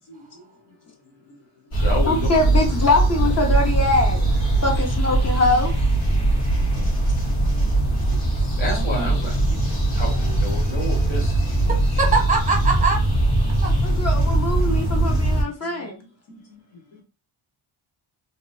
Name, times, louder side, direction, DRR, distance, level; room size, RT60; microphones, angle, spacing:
voice 1, 0.1-0.4 1.0-1.3 1.7-2.5 8.1-9.6 9.9-12.0 14.0-14.1 15.0-15.1 15.6-17.0, left 2 dB, 60° left, 1.5 m, -33 dB
sound 1, 1.7-15.4, right 2 dB, 80° left, 1.5 m, -21 dB
voice 2, 2.1-4.2 4.6-5.7 10.6-10.7 13.8-16.0, left 2 dB, 30° left, 0.9 m, -22 dB
voice 3, 8.7-9.1 12.0-13.0 13.6-13.7, right 4 dB, 15° right, 0.9 m, -22 dB
3.0 x 2.8 x 2.7 m
wide cardioid pair, 125°, 50 cm